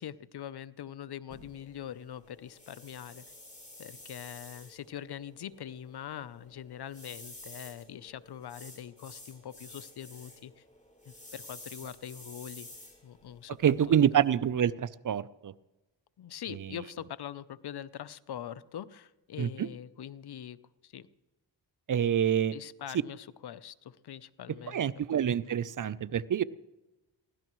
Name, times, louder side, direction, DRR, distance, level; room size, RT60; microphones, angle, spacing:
voice 1, 0.0-3.2 3.8-10.5 11.1-12.7 13.0-13.6 13.9-14.0 16.2-20.6 20.8-21.1 22.5-24.9, left 10 dB, 65° left, 17 dB, 0.7 m, -43 dB
sound 1, 1.3-14.3, left 1 dB, 20° left, 5.4 m, -51 dB
voice 2, 13.6-15.5 16.5-16.8 19.4-19.7 21.9-22.5 24.7-26.4, right 9 dB, 50° right, 18 dB, 0.6 m, -27 dB
23.0 x 16.5 x 3.1 m, 1.1 s
cardioid pair, 65°, 42 cm